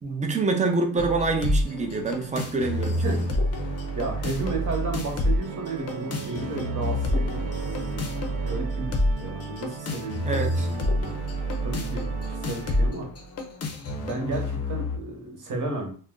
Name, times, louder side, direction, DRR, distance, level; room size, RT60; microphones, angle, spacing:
voice 1, 0.0-3.0 10.2-10.7, right 3 dB, 20° right, 4 dB, 0.5 m, -26 dB
sound 1, 1.0-15.0, left 1 dB, 40° left, 0.5 m, -28 dB
Organ, 1.5-13.3, right 7 dB, 75° right, 0.5 m, -40 dB
voice 2, 3.9-13.1 13.9-15.9, right 2 dB, 50° right, 1 dB, 1.1 m, -33 dB
2.5 x 2.1 x 3.6 m, 0.43 s
cardioid pair, 115°, 39 cm